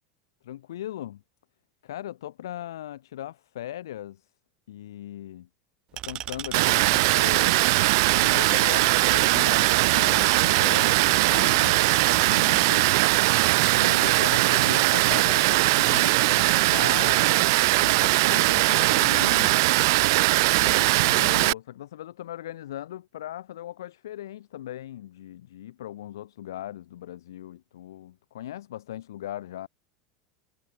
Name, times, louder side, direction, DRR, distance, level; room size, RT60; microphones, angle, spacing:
voice 1, 0.4-1.2 1.8-4.2 4.7-5.5 6.0-7.6 8.1-12.9 13.7-19.6 20.6-29.7, left 12 dB, 70° left, 2.7 m, -38 dB
sound 1, 6.0-12.7, right 13 dB, 40° right, 1.0 m, -35 dB
Water, 6.5-21.5, right 22 dB, 60° right, 0.6 m, -20 dB
figure-of-eight pair, 85°, 2 cm